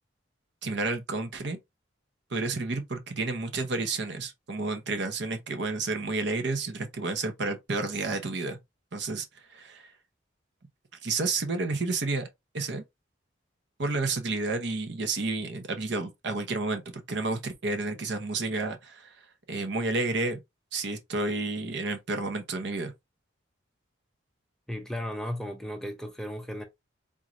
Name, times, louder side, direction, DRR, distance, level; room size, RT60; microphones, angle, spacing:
voice 1, 0.6-1.6 2.3-8.6 8.9-9.3 9.5-9.9 11.0-12.3 12.5-12.8 13.8-19.1 19.5-20.4 20.7-22.9, right 3 dB, 60° right, 0.8 m, -30 dB
voice 2, 24.7-26.6, equal, 5° left, 0.5 m, -35 dB
3.8 x 3.0 x 2.5 m
head